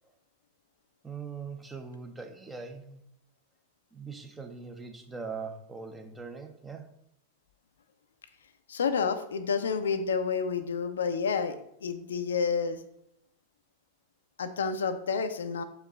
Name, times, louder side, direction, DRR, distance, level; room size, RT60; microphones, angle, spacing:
voice 1, 1.0-3.0 3.9-6.9, right 5 dB, 10° right, 5 dB, 0.8 m, -41 dB
voice 2, 8.7-11.6 11.8-12.8 14.4-15.6, left 5 dB, 65° left, 9 dB, 0.5 m, -29 dB
6.6 x 4.7 x 3.8 m, 0.79 s
figure-of-eight pair, 90°, 0 cm